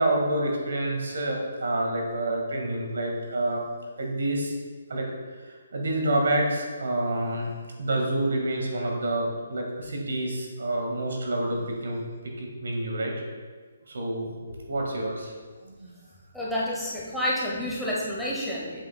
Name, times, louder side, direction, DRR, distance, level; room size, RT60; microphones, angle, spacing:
voice 1, 0.0-3.6 4.0-4.5 4.9-5.1 5.4-7.5 7.8-12.0 12.4-13.2 13.9-14.4 14.7-15.3 15.6-16.0, right 1 dB, 65° right, 0 dB, 1.8 m, -28 dB
voice 2, 16.3-18.8, equal, ahead, -7 dB, 1.2 m, -29 dB
7.9 x 7.9 x 2.3 m, 1.5 s
figure-of-eight pair, 140°, 0 cm